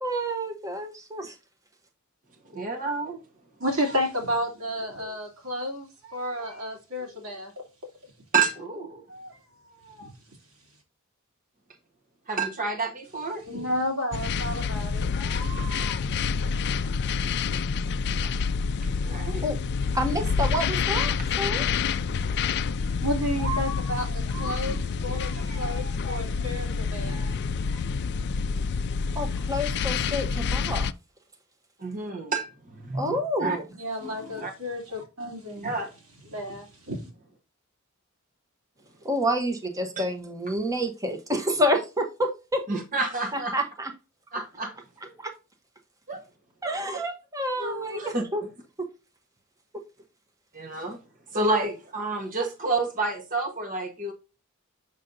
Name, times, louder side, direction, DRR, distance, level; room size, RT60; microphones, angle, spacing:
voice 1, 0.0-1.3 19.4-19.6 19.9-21.6 29.1-30.9 32.9-33.6 39.0-42.6 43.3-43.9 45.2-45.3 46.6-48.4 48.8-48.9 50.8-50.9 51.5-51.7, equal, 15° right, 1.1 m, -28 dB
voice 2, 2.5-3.2 8.3-9.0 12.3-13.4 18.2-18.3 19.0-19.4 31.8-32.5 32.8-33.6 34.0-34.5 35.6-35.9 40.0-40.1 42.7-43.6 44.3-44.7 46.1-46.2 46.6-46.7 47.6-48.2 50.5-51.0 51.3-54.1, right 3 dB, 40° right, 1.2 m, -29 dB
voice 3, 3.6-7.9 9.1-9.4 9.7-10.1 13.3-16.3 22.8-27.4 27.7-27.8 33.8-35.7 36.2-37.1, equal, 85° right, 2.8 m, -32 dB
sound 1, 14.1-30.9, left 5 dB, 55° left, 0.4 m, -28 dB
6.8 x 6.2 x 2.6 m
head